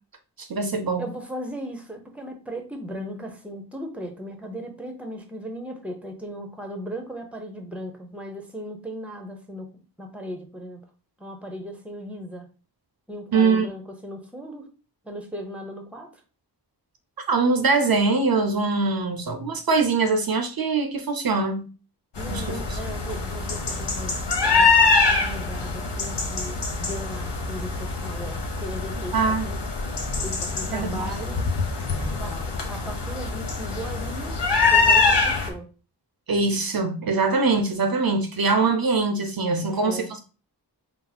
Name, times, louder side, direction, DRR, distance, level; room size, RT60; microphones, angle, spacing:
voice 1, 0.4-1.1 13.3-13.7 17.3-21.7 22.3-22.8 29.1-29.5 30.7-31.1 36.3-40.2, right 4 dB, 55° right, 6 dB, 0.6 m, -23 dB
voice 2, 1.0-10.8 11.2-12.5 13.1-14.7 15.0-16.2 22.2-24.2 24.4-24.7 25.1-29.6 30.2-31.5 32.0-34.4 34.7-35.7 39.6-40.1, equal, 5° right, 4 dB, 0.8 m, -37 dB
sound 1, 22.2-35.5, left 4 dB, 80° left, 1.1 m, -24 dB
4.3 x 2.0 x 4.0 m, 0.35 s
wide cardioid pair, 90°, 42 cm